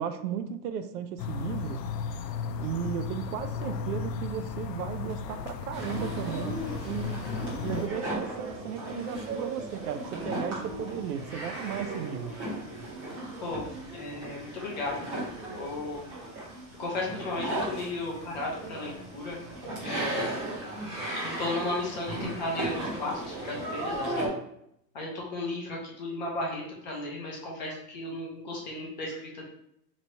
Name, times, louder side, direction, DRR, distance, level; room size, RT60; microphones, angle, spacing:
voice 1, 0.0-1.8 2.6-7.2 7.6-12.3 20.9-21.2, right 8 dB, 70° right, 9 dB, 0.5 m, -35 dB
sound 1, 1.2-7.9, left 6 dB, 75° left, 0.6 m, -35 dB
sound 2, 5.7-24.3, right 1 dB, 20° right, 0.6 m, -36 dB
voice 2, 13.9-15.3 15.5-16.0 16.8-19.4 19.8-20.3 21.4-24.3 24.9-29.5, left 2 dB, 30° left, -2 dB, 0.5 m, -35 dB
3.0 x 2.7 x 4.2 m, 0.75 s
supercardioid pair, 175°, 49 cm